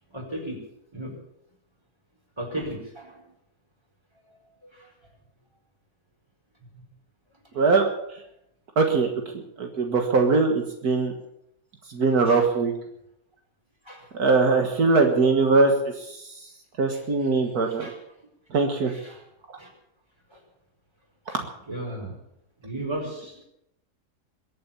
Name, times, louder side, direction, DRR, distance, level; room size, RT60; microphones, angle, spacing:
voice 1, 0.1-0.6 0.9-1.1 2.4-3.2 4.3-4.4 4.8-4.9 12.3-12.4 13.8-14.0 16.9-17.0 17.6-17.9 18.9-19.2 19.6-19.7 20.3-20.4 21.7-22.2 22.6-23.4, right 1 dB, 15° right, 0 dB, 4.8 m, -35 dB
voice 2, 7.6-7.9 8.8-9.1 9.6-11.1 11.9-12.7 14.2-15.7 16.8-17.9 18.5-18.9, right 4 dB, 75° right, 3 dB, 2.1 m, -21 dB
22.5 x 8.7 x 7.2 m, 0.78 s
omnidirectional pair, 1.6 m